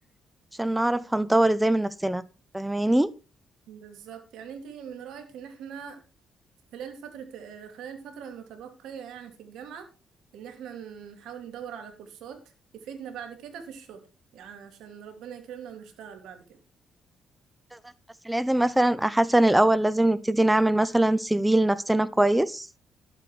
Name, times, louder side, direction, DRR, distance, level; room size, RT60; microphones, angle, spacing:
voice 1, 0.6-2.2 2.5-3.1 18.2-22.7, right 1 dB, 10° right, 0.9 m, -22 dB
voice 2, 3.7-6.0 6.7-9.9 10.3-12.4 12.7-14.0 14.3-16.6, right 8 dB, 75° right, 2.7 m, -42 dB
11.5 x 9.2 x 4.6 m
supercardioid pair, 55°, 0 cm